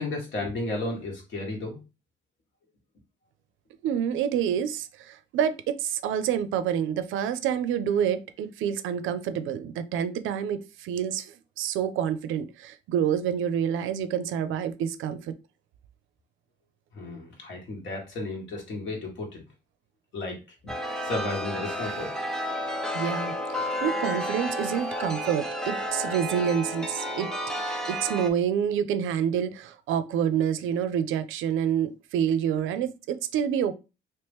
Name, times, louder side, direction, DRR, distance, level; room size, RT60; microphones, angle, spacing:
voice 1, 0.0-1.8 16.9-19.4 20.1-20.7 21.0-22.2, left 2 dB, 70° left, 1.6 m, -33 dB
voice 2, 3.8-15.3 22.9-27.3 27.9-33.7, right 8 dB, 85° right, 0.4 m, -28 dB
Chime, 20.7-28.3, equal, 5° left, 0.7 m, -31 dB
3.0 x 2.9 x 3.4 m
cardioid pair, 90°, 20 cm